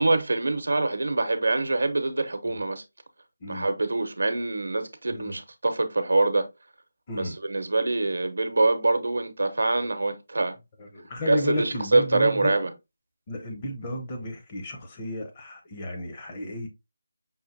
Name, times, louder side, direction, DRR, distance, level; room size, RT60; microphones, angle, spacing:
voice 1, 0.0-2.8 3.5-6.5 7.1-10.6 11.2-12.7, right 2 dB, 75° right, 0.7 m, -25 dB
voice 2, 5.1-5.4 7.1-7.4 10.8-12.6 13.3-16.7, left 1 dB, 25° left, 0.8 m, -32 dB
5.5 x 2.5 x 2.5 m
figure-of-eight pair, 165°, 0 cm